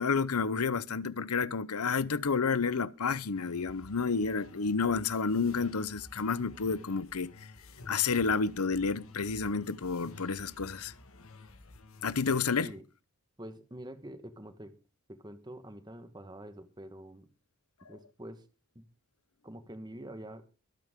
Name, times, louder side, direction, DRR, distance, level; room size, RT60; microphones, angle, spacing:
voice 1, 0.0-7.3 7.9-10.9 12.0-12.7, left 5 dB, 90° left, 0.8 m, -30 dB
sound 1, 3.3-12.4, left 2 dB, 70° left, 1.7 m, -52 dB
voice 2, 13.4-14.7 15.1-17.3 17.9-18.5 18.7-18.8 19.4-20.5, right 1 dB, 20° right, 1.3 m, -46 dB
23.0 x 9.1 x 3.7 m
head